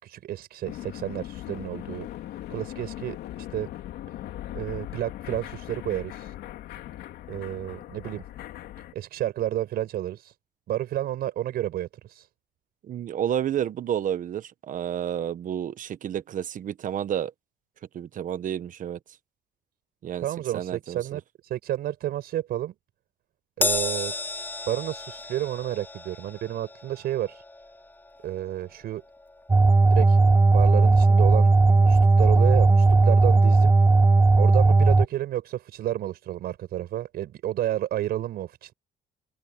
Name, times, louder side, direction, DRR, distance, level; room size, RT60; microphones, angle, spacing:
voice 1, 0.0-2.1 2.5-3.7 4.5-6.3 7.3-8.3 8.9-10.3 10.7-12.3 20.2-22.7 23.6-24.1 24.7-27.4 28.2-29.0 29.9-30.2 30.5-33.7 34.4-38.7, right 13 dB, 70° right, 5.5 m, -31 dB
sound 1, 0.6-8.9, left 13 dB, 75° left, 3.0 m, -39 dB
voice 2, 12.8-17.3 17.9-19.0 20.0-20.3 20.5-21.2, right 10 dB, 50° right, 1.2 m, -30 dB
Crash cymbal, 23.6-30.2 30.6-30.8 31.8-31.9, left 2 dB, 10° left, 2.8 m, -34 dB
sound 2, 29.5-35.1, right 3 dB, 15° right, 0.5 m, -17 dB
cardioid pair, 110°, 17 cm